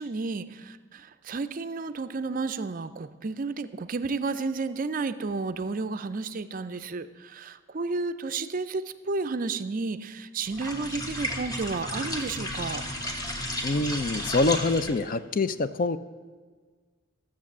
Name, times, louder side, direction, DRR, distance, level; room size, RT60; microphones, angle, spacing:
voice 1, 0.0-12.8, right 3 dB, 40° right, 11 dB, 0.4 m, -32 dB
sound 1, 10.4-15.1, equal, 20° left, 1.3 m, -33 dB
voice 2, 13.6-16.0, left 3 dB, 40° left, 13 dB, 0.4 m, -25 dB
13.0 x 7.4 x 7.2 m, 1.5 s
head